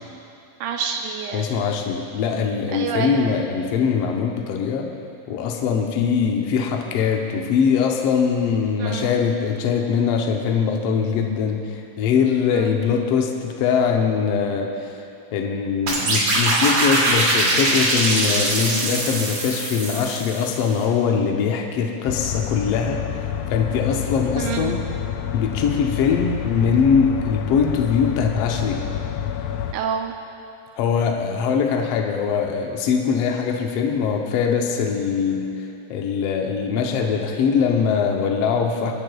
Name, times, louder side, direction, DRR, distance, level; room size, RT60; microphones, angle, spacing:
voice 1, 0.6-1.7 2.7-3.5 8.8-9.2 12.5-12.7 24.4-24.8 29.7-30.1, right 7 dB, 80° right, 3 dB, 2.1 m, -28 dB
voice 2, 1.3-4.9 5.3-15.0 15.3-24.8 25.3-28.9 30.8-38.9, left 6 dB, 75° left, 1 dB, 1.5 m, -22 dB
sound 1, 15.9-20.7, right 2 dB, 65° right, 3.8 m, -22 dB
sound 2, 22.1-29.7, left 10 dB, 90° left, 1.5 m, -28 dB
25.0 x 11.0 x 2.3 m, 2.8 s
omnidirectional pair, 3.6 m